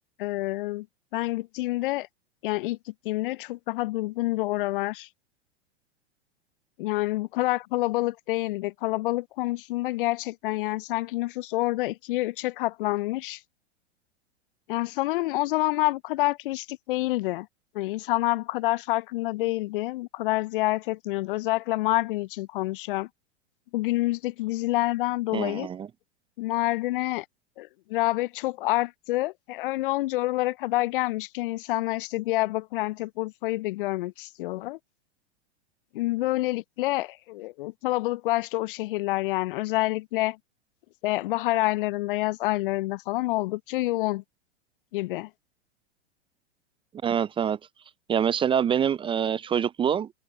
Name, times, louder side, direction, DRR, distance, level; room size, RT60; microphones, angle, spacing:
voice 1, 0.2-0.9 1.1-2.1 2.4-5.1 6.8-13.4 14.7-17.5 17.7-23.1 23.7-25.7 26.4-27.3 27.6-34.8 35.9-40.4 41.0-44.2 44.9-45.3, left 18 dB, 50° left, 0.6 m, -27 dB
voice 2, 25.3-25.9 47.0-47.6 48.1-50.1, right 8 dB, 15° right, 0.5 m, -25 dB
open air
hypercardioid pair, 105°, 34 cm